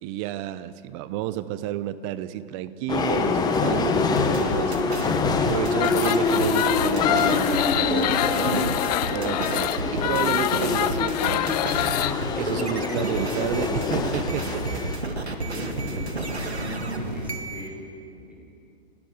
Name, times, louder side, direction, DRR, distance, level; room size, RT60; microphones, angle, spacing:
voice 1, 0.0-5.0 5.4-8.7 9.1-14.8 15.5-15.7, right 13 dB, 30° right, 14 dB, 0.9 m, -31 dB
sound 1, 2.9-15.0, left 4 dB, 10° left, 1.4 m, -25 dB
sound 2, 4.2-17.7, right 2 dB, 85° right, 2.2 m, -32 dB
sound 3, 5.7-12.1, left 13 dB, 40° left, 0.8 m, -26 dB
voice 2, 15.4-18.3, equal, 5° right, -5 dB, 6.3 m, -38 dB
30.0 x 12.5 x 7.9 m, 2.7 s
figure-of-eight pair, 115°, 32 cm